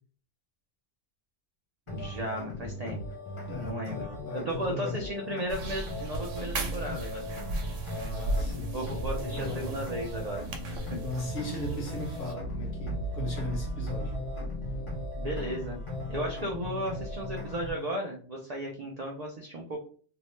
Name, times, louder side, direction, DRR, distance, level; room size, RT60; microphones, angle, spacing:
sound 1, 1.9-17.9, left 2 dB, 35° left, 0.5 m, -39 dB
voice 1, 1.9-3.0 3.5-7.3 8.7-10.5 10.9-11.0 15.2-15.8 16.1-19.8, right 1 dB, 60° right, 0.4 m, -35 dB
voice 2, 3.5-5.2 7.9-9.9 11.0-14.1, left 2 dB, 55° left, 0.9 m, -38 dB
sound 2, 5.5-12.3, right 2 dB, 85° right, 0.9 m, -36 dB
sound 3, 12.4-17.7, right 2 dB, 80° left, 1.1 m, -38 dB
2.7 x 2.1 x 3.0 m
omnidirectional pair, 1.2 m